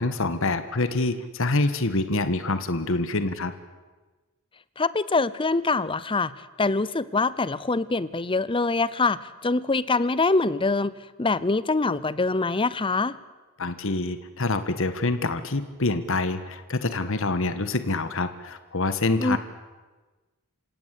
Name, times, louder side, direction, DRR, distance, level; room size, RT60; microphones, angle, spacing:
voice 1, 0.0-3.5 13.6-19.4, left 2 dB, 65° left, 11 dB, 1.5 m, -26 dB
voice 2, 4.8-6.3 6.6-10.9 11.2-13.2 19.2-19.4, left 3 dB, 25° left, 18 dB, 0.7 m, -24 dB
28.0 x 17.0 x 8.3 m, 1.2 s
head